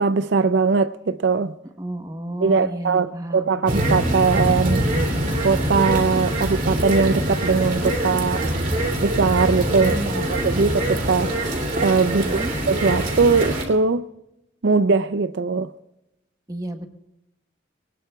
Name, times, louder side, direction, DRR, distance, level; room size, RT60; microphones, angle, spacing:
voice 1, 0.0-1.5 2.4-4.9 5.4-8.5 9.0-11.5 11.8-14.1 14.6-15.7, right 4 dB, 65° right, 0.5 m, -21 dB
voice 2, 1.8-3.5 9.8-10.3 12.1-12.5 16.5-16.9, right 1 dB, 20° right, 1.0 m, -31 dB
sound 1, 3.7-13.6, right 1 dB, 45° right, 2.7 m, -24 dB
22.0 x 19.0 x 2.3 m
head